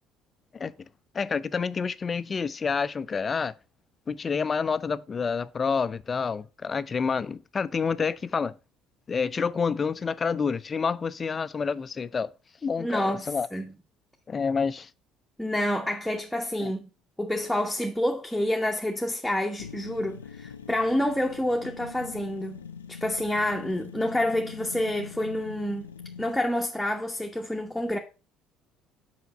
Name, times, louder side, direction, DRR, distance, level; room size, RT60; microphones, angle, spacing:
voice 1, 1.1-3.5 4.1-8.5 9.1-12.3 12.6-13.5 14.3-14.9 16.6-16.7, left 5 dB, 35° left, 0.5 m, -28 dB
voice 2, 12.8-13.7 15.4-16.9 17.2-22.6 22.9-25.9 26.2-28.0, left 1 dB, 5° left, 1.0 m, -28 dB
sound 1, 19.6-26.4, left 7 dB, 90° left, 0.4 m, -43 dB
5.8 x 5.0 x 5.4 m
hypercardioid pair, 60°, 0 cm